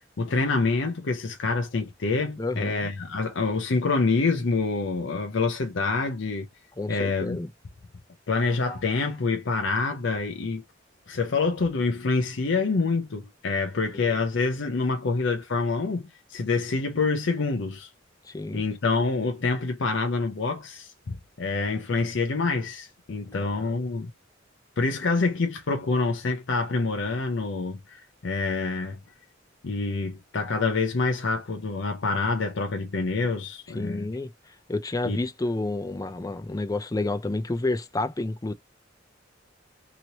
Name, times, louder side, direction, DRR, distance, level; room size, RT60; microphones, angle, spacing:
voice 1, 0.2-6.5 6.9-7.4 8.3-10.6 11.1-17.9 18.5-24.1 24.8-29.0 29.6-34.1 35.0-35.2, left 3 dB, 65° left, 0.6 m, -26 dB
voice 2, 2.4-2.9 6.8-7.5 13.9-14.1 18.2-18.6 23.3-23.7 33.7-38.5, left 2 dB, 20° left, 0.4 m, -30 dB
3.0 x 2.8 x 2.7 m
head